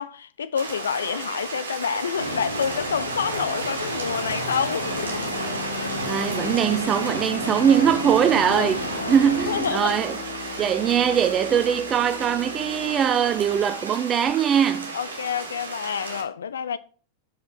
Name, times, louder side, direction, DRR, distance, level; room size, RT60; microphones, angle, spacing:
voice 1, 0.0-5.2 8.4-8.7 9.5-10.0 14.9-16.8, left 7 dB, 65° left, 0.4 m, -28 dB
sound 1, 0.5-16.2, right 3 dB, 70° right, 1.8 m, -34 dB
sound 2, 2.2-9.7, left 1 dB, 85° left, 1.0 m, -32 dB
sound 3, 4.8-13.7, left 6 dB, 40° left, 3.3 m, -38 dB
voice 2, 6.1-8.8 9.1-10.2 10.6-14.9, right 8 dB, 25° right, 0.4 m, -21 dB
6.4 x 5.6 x 5.7 m
figure-of-eight pair, 90°, 0 cm